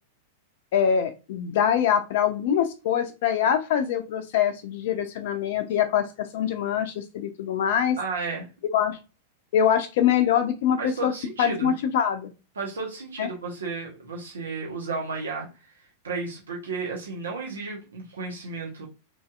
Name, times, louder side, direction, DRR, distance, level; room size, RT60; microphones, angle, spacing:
voice 1, 0.7-8.0 8.7-9.0 9.5-11.1 11.4-12.3 13.2-13.3, left 9 dB, 60° left, 8 dB, 0.4 m, -24 dB
voice 2, 8.0-8.5 10.8-11.7 12.6-15.7 16.0-18.9, right 4 dB, 80° right, -2 dB, 0.9 m, -33 dB
3.1 x 2.7 x 2.4 m, 0.30 s
hypercardioid pair, 100°, 0 cm